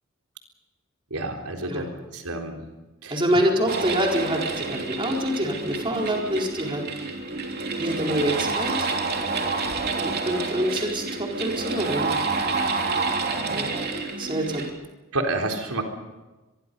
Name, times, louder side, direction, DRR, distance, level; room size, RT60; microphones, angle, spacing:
voice 1, 1.1-1.9 2.1-2.6 3.0-3.2 15.1-15.8, right 2 dB, 90° right, 2 dB, 3.9 m, -28 dB
voice 2, 3.1-6.8 7.8-9.1 9.9-12.1 13.5-13.8 14.2-14.6, equal, 25° right, 0 dB, 4.3 m, -26 dB
sound 1, 3.7-14.7, right 3 dB, 45° right, 3.3 m, -28 dB
25.0 x 22.5 x 5.4 m, 1.1 s
head